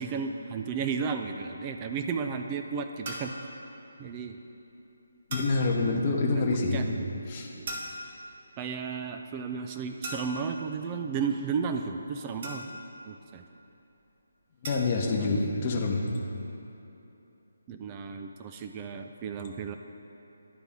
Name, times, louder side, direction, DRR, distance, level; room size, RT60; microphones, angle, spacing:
voice 1, 0.0-3.3 4.0-4.4 6.2-7.3 7.5-7.8 8.6-12.7 13.1-13.5 15.0-15.4 17.7-19.8, right 5 dB, 25° right, 5 dB, 0.3 m, -34 dB
sound 1, 3.1-3.4 5.3-5.7 7.7-8.2 10.0-10.5 12.4-13.0 14.6-15.0, right 1 dB, 40° right, 0.9 m, -38 dB
voice 2, 5.3-6.8 7.3-7.5 14.6-16.0, left 3 dB, 30° left, -1 dB, 0.8 m, -26 dB
11.5 x 4.0 x 3.6 m, 2.9 s
figure-of-eight pair, 150°, 0 cm